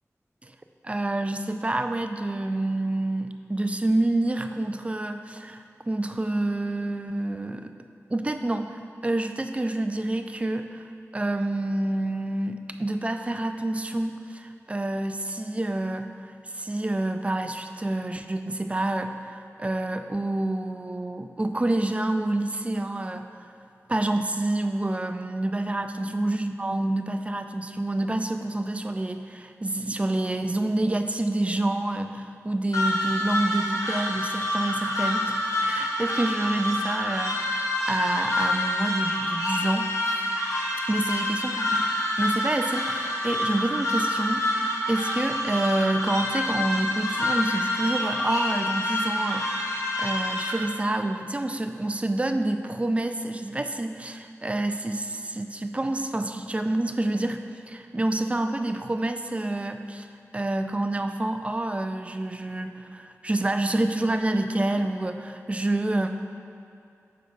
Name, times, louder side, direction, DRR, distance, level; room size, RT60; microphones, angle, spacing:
voice 1, 0.8-7.7 8.1-10.8 11.1-16.1 16.5-23.3 23.9-39.9 40.9-41.9 42.2-44.5 44.9-57.4 57.7-60.1 60.3-66.1, right 2 dB, 25° right, 7 dB, 0.3 m, -28 dB
sound 1, 32.7-50.5, left 1 dB, 80° left, 0.8 m, -27 dB
6.3 x 4.5 x 3.9 m, 2.6 s
wide cardioid pair, 80°, 5 cm